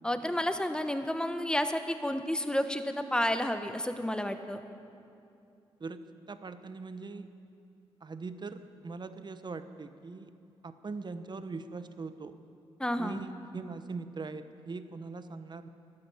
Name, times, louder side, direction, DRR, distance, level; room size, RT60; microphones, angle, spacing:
voice 1, 0.0-4.6 12.8-13.2, left 1 dB, 5° left, 8 dB, 1.1 m, -31 dB
voice 2, 5.8-7.3 8.0-10.3 10.6-12.4 13.0-15.7, right 4 dB, 40° right, 11 dB, 0.9 m, -41 dB
12.0 x 9.8 x 8.4 m, 2.6 s
supercardioid pair, 50°, 11 cm